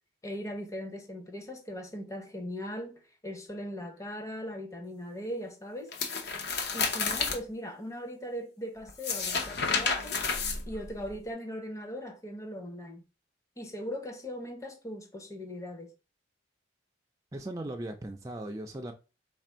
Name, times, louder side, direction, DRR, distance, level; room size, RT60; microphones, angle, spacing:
voice 1, 0.2-5.9 6.4-10.2 10.7-13.0 13.6-15.9, equal, 15° left, 0.7 m, -39 dB
sound 1, 5.9-7.4 8.9-11.1, left 5 dB, 60° left, 0.7 m, -31 dB
voice 2, 17.3-18.9, right 1 dB, 15° right, 0.3 m, -38 dB
3.5 x 2.5 x 4.3 m
head